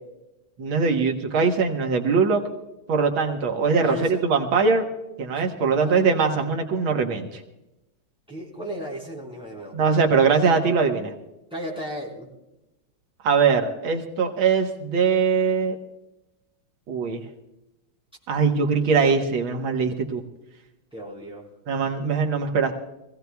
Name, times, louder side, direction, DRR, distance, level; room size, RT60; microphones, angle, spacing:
voice 1, 0.6-2.4 2.9-4.9 5.2-7.4 9.7-11.1 13.2-15.8 16.9-17.2 18.3-20.2 21.7-22.7, right 5 dB, 90° right, 3 dB, 2.1 m, -21 dB
voice 2, 3.8-4.2 5.8-6.0 8.3-10.0 11.5-12.3 20.9-21.4, equal, ahead, -4 dB, 4.1 m, -35 dB
24.5 x 16.5 x 2.3 m, 0.94 s
omnidirectional pair, 2.1 m